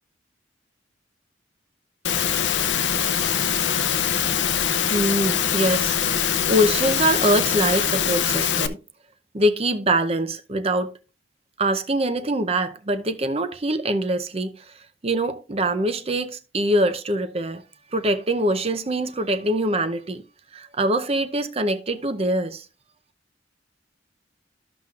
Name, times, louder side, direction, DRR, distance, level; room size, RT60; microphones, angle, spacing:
Engine / Mechanisms, 2.0-8.7, left 8 dB, 80° left, 0.7 m, -23 dB
voice 1, 4.6-8.8 9.3-10.9 11.6-14.5 15.0-17.6 17.9-20.2 20.5-22.6, right 1 dB, 35° right, 0.7 m, -24 dB
13.0 x 5.9 x 2.4 m
head